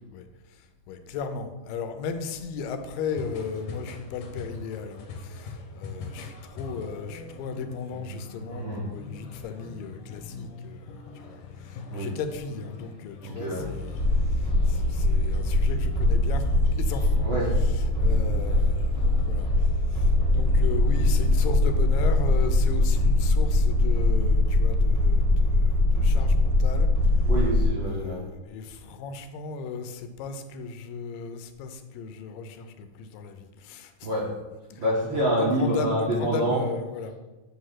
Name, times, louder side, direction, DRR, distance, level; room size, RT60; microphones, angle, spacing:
voice 1, 0.0-14.0 14.3-17.3 17.6-27.2 27.9-34.1 34.7-34.8 35.4-37.1, left 5 dB, 85° left, 8 dB, 2.3 m, -36 dB
sound 1, 3.1-22.2, left 3 dB, 70° left, 1.7 m, -43 dB
voice 2, 8.5-8.8 11.9-12.1 13.2-13.6 17.1-17.5 27.2-28.2 34.0-34.3 34.8-36.7, right 1 dB, 55° right, -7 dB, 1.3 m, -27 dB
sound 2, 13.6-21.6, left 3 dB, 75° right, 3.4 m, -43 dB
sound 3, 14.0-27.7, left 1 dB, 40° left, 0.9 m, -22 dB
8.1 x 3.0 x 5.6 m, 1.2 s
omnidirectional pair, 3.9 m